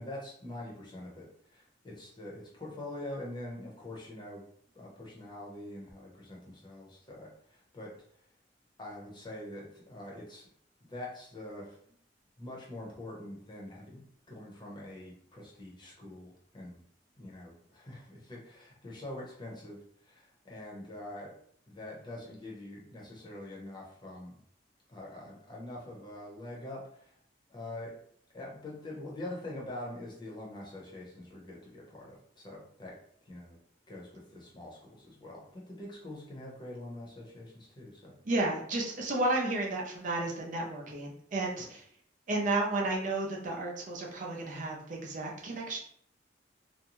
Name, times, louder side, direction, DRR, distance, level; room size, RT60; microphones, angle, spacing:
voice 1, 0.0-4.5 4.7-8.2 8.8-10.5 10.8-12.0 12.4-16.8 17.2-21.3 21.7-24.4 24.9-27.2 27.5-27.9 28.3-33.0 33.2-33.6 33.9-38.1 41.6-41.7, left 1 dB, 25° left, -3 dB, 0.8 m, -44 dB
voice 2, 38.2-41.8 42.3-45.8, right 2 dB, 45° right, -1 dB, 0.5 m, -32 dB
2.6 x 2.2 x 2.9 m, 0.64 s
head